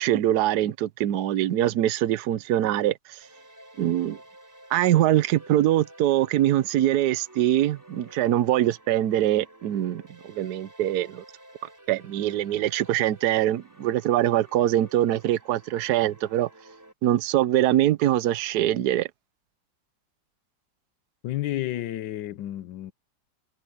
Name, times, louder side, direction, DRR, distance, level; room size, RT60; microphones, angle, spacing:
voice 1, 0.0-3.2 3.8-4.2 4.7-11.2 11.9-16.5 17.0-19.1, right 13 dB, 65° right, 1.2 m, -23 dB
sound 1, 3.2-16.9, right 1 dB, 10° right, 3.4 m, -51 dB
voice 2, 21.2-22.9, left 14 dB, 80° left, 1.4 m, -31 dB
omnidirectional pair, 2.0 m